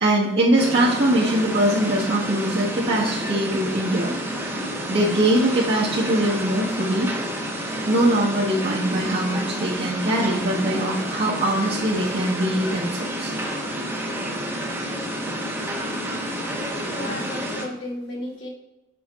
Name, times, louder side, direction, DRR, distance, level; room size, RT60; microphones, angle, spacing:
voice 1, 0.0-4.2 4.9-7.1 7.9-13.3, right 1 dB, 55° right, -6 dB, 1.4 m, -22 dB
sound 1, 0.6-17.6, equal, 10° right, 1.2 m, -29 dB
voice 2, 16.7-18.5, left 1 dB, 65° left, -3 dB, 2.3 m, -34 dB
7.6 x 5.1 x 4.2 m, 0.99 s
head